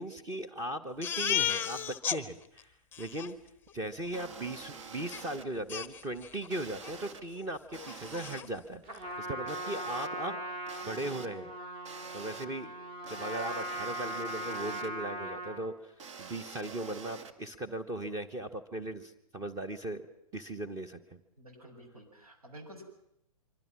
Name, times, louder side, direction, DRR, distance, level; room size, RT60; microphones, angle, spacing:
voice 1, 0.0-3.4 3.7-11.5 12.1-12.8 13.1-20.0 20.3-21.2, right 1 dB, 15° right, 8 dB, 1.3 m, -38 dB
Crying sobbing, 1.0-2.2 2.6-2.7 2.9-3.3 5.1-5.2 5.7-6.5 6.8-7.0 7.4-7.5 7.8-8.5, left 10 dB, 10° left, 0.9 m, -34 dB
sound 1, 4.1-5.5 6.5-7.2 7.7-8.4 9.5-10.1 10.7-11.3 11.9-12.5 13.0-14.9 16.0-17.3, right 5 dB, 50° right, 2.2 m, -47 dB
Trumpet, 8.8-15.7, right 1 dB, 35° right, 4.2 m, -39 dB
voice 2, 21.4-22.8, equal, 75° right, 3 dB, 7.7 m, -50 dB
25.5 x 25.0 x 6.2 m, 0.75 s
figure-of-eight pair, 115°, 19 cm